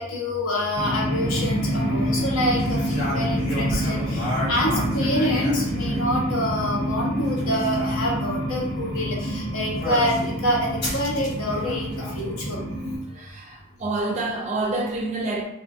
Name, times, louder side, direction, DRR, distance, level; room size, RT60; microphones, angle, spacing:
voice 1, 0.0-12.6, left 1 dB, 75° left, 0.7 m, -26 dB
sound 1, 0.7-13.0, equal, 30° left, 1.2 m, -27 dB
sound 2, 2.6-6.2 7.1-8.0 9.8-10.3 10.8-12.3, left 1 dB, 50° left, 1.1 m, -32 dB
voice 2, 13.1-15.4, right 2 dB, 35° right, 0.4 m, -28 dB
2.7 x 2.4 x 2.3 m
head